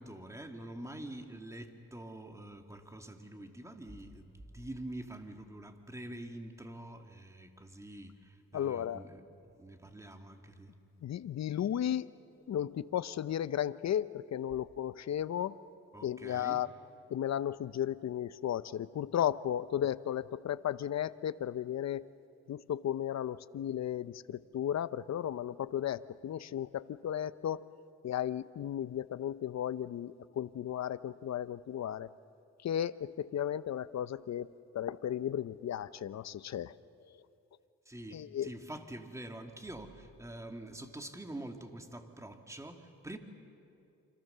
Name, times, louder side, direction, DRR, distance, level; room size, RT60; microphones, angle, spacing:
voice 1, 0.0-10.7 15.9-16.6 37.9-43.2, right 1 dB, 10° right, 5 dB, 2.2 m, -46 dB
voice 2, 8.5-9.0 11.0-12.1 12.5-15.6 16.0-16.7 17.1-22.1 22.5-27.6 28.0-32.1 32.6-34.5 34.7-36.8 38.1-38.5, left 10 dB, 60° left, 16 dB, 0.7 m, -34 dB
28.0 x 26.0 x 6.8 m, 2.6 s
cardioid pair, 85°, 31 cm